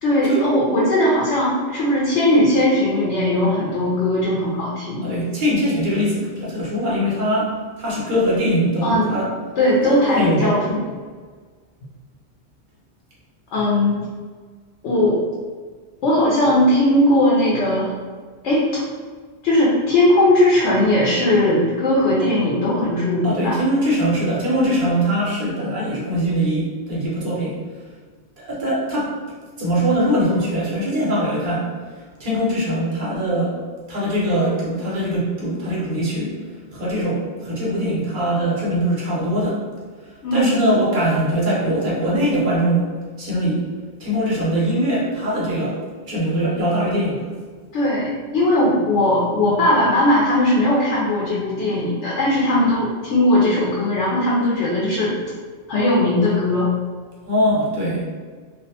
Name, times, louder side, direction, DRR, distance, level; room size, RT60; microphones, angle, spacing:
voice 1, 0.0-5.0 8.8-9.1 9.6-10.8 13.5-14.0 14.8-15.2 16.0-17.9 18.4-18.6 19.4-23.6 40.2-40.7 47.7-48.1 48.3-55.1 55.7-56.7, left 1 dB, 90° left, -6 dB, 0.9 m, -18 dB
voice 2, 5.0-9.3 9.8-10.6 23.2-27.5 28.4-29.2 29.6-33.6 33.9-36.3 36.7-39.6 40.0-42.9 43.2-43.7 44.0-47.3 57.3-58.0, equal, 50° right, -6 dB, 0.9 m, -22 dB
2.4 x 2.1 x 2.7 m, 1.5 s
omnidirectional pair, 1.2 m